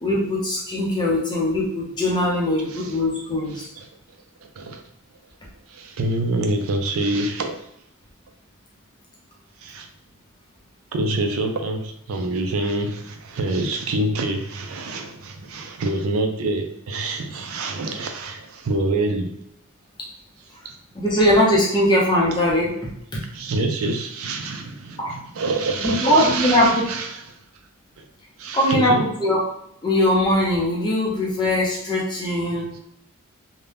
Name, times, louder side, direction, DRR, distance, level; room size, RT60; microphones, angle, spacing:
voice 1, 0.0-3.7 20.9-23.2 25.0-25.2 25.8-26.9 28.5-29.4 29.8-32.8, left 1 dB, 20° left, -4 dB, 0.6 m, -21 dB
voice 2, 5.7-7.5 9.6-9.9 10.9-19.3 20.6-20.7 23.3-27.1 28.0-28.1 28.4-29.0, right 2 dB, 75° right, 4 dB, 0.4 m, -26 dB
2.7 x 2.2 x 3.3 m, 0.76 s
head